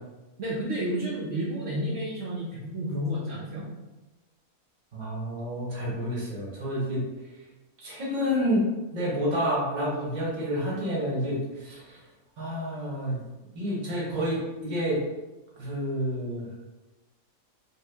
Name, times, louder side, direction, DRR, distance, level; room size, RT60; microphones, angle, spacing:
voice 1, 0.4-3.7, equal, 65° right, -5 dB, 0.9 m, -31 dB
voice 2, 4.9-7.0 7.8-8.6 8.9-12.0 12.4-13.2 13.5-15.0 15.6-16.5, equal, 35° right, -5 dB, 0.9 m, -29 dB
3.1 x 2.2 x 3.3 m, 1.1 s
omnidirectional pair, 1.5 m